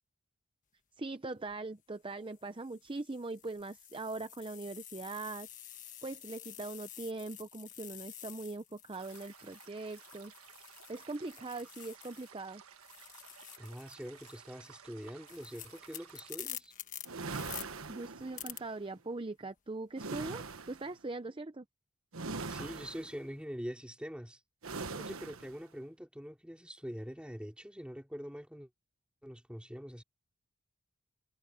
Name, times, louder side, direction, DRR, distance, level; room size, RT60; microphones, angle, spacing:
voice 1, 1.0-5.5 6.0-10.3 10.9-12.6 17.9-21.7, right 3 dB, 25° right, 0.6 m, -41 dB
sound 1, 1.3-1.5 2.3-12.5 12.7-17.7 18.4-18.6, left 11 dB, 35° left, 1.4 m, -49 dB
sound 2, 8.9-16.3, right 8 dB, 90° right, 1.5 m, -56 dB
voice 2, 13.6-16.7 22.5-24.4 24.9-28.7 29.2-30.0, equal, 5° right, 3.0 m, -44 dB
sound 3, 17.0-18.7 20.0-20.9 22.1-23.2 24.6-25.6, right 4 dB, 75° right, 1.3 m, -41 dB
head